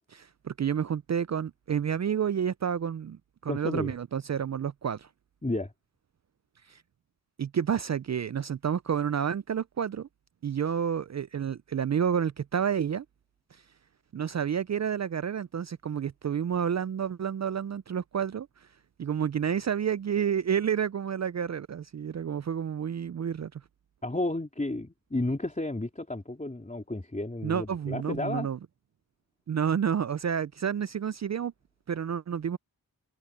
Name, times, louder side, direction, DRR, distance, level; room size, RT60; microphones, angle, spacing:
voice 1, 0.1-5.1 6.7-6.8 7.4-10.1 10.4-13.0 14.1-18.5 19.0-23.6 27.4-28.6 29.5-31.5 31.9-32.6, right 8 dB, 45° right, 0.5 m, -30 dB
voice 2, 3.5-3.9 5.4-5.7 24.0-28.5, left 2 dB, 20° left, 3.2 m, -32 dB
cardioid pair, 55°, 38 cm